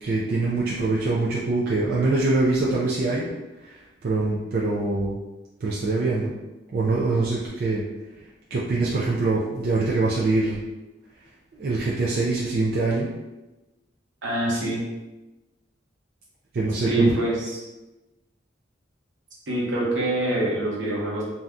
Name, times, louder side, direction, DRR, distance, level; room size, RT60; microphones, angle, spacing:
voice 1, 0.0-3.3 3.6-5.2 5.6-6.3 6.7-7.9 8.5-10.6 11.5-13.1 16.5-17.1, right 3 dB, 55° right, -5 dB, 0.4 m, -24 dB
voice 2, 14.2-14.8 16.9-17.6 19.5-21.2, right 1 dB, 80° right, -5 dB, 1.0 m, -25 dB
2.6 x 2.2 x 3.5 m, 1.1 s
head